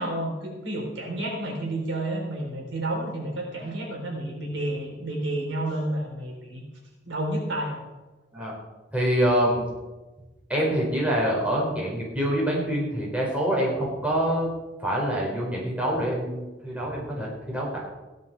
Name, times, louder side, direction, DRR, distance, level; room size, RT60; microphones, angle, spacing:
voice 1, 0.0-6.6 7.1-7.8, right 1 dB, 90° right, 0 dB, 4.0 m, -30 dB
voice 2, 8.9-9.6 10.5-14.5 14.8-17.8, equal, 10° right, -4 dB, 4.6 m, -25 dB
16.0 x 11.0 x 4.6 m, 1.2 s
head